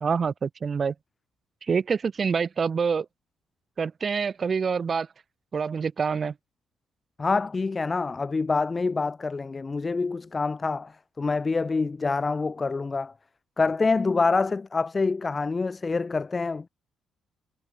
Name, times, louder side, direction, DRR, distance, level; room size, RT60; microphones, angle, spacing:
voice 1, 0.0-0.9 1.6-3.1 3.8-5.1 5.5-6.3, right 5 dB, 40° right, 0.6 m, -26 dB
voice 2, 7.2-10.9 11.2-13.1 13.6-16.7, left 4 dB, 30° left, 0.5 m, -26 dB
cardioid pair, 90°, 0 cm